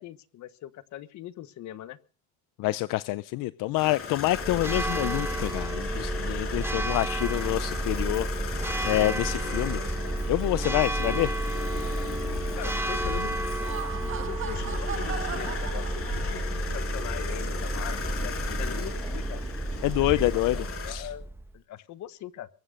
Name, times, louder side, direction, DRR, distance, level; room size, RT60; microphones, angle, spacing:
voice 1, 0.0-2.0 12.5-13.3 14.2-19.4 20.0-21.3 21.5-22.5, left 12 dB, 65° left, 1.3 m, -41 dB
voice 2, 2.6-9.8 10.3-11.3 11.8-11.9 19.8-20.6 20.9-21.1, left 17 dB, 85° left, 0.7 m, -27 dB
sound 1, 3.8-20.9, left 5 dB, 45° left, 5.4 m, -37 dB
Church bell, 4.3-21.5, right 1 dB, 10° right, 1.1 m, -31 dB
Laughter, 13.4-16.7, right 8 dB, 40° right, 1.5 m, -38 dB
23.0 x 8.9 x 6.5 m
cardioid pair, 155°, 31 cm